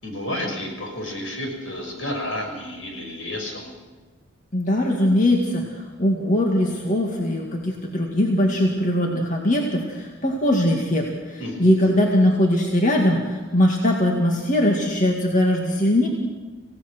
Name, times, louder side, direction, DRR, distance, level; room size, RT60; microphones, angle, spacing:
voice 1, 0.0-3.7 11.4-11.7, left 1 dB, 80° left, 2 dB, 6.0 m, -31 dB
voice 2, 4.5-16.1, left 1 dB, 40° left, 0 dB, 2.1 m, -21 dB
26.5 x 17.0 x 6.2 m, 1.3 s
head